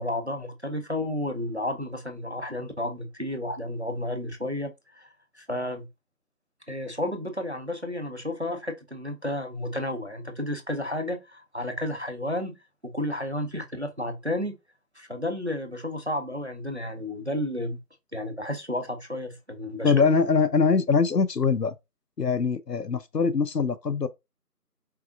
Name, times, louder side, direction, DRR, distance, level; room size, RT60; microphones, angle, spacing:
voice 1, 0.0-5.1 5.3-5.9 6.7-12.6 12.8-14.6 15.0-17.8 18.1-20.1, left 1 dB, 45° right, 0.7 m, -32 dB
voice 2, 19.8-21.8 22.2-24.1, left 5 dB, 80° left, 0.8 m, -23 dB
4.7 x 3.6 x 2.6 m
figure-of-eight pair, 180°, 48 cm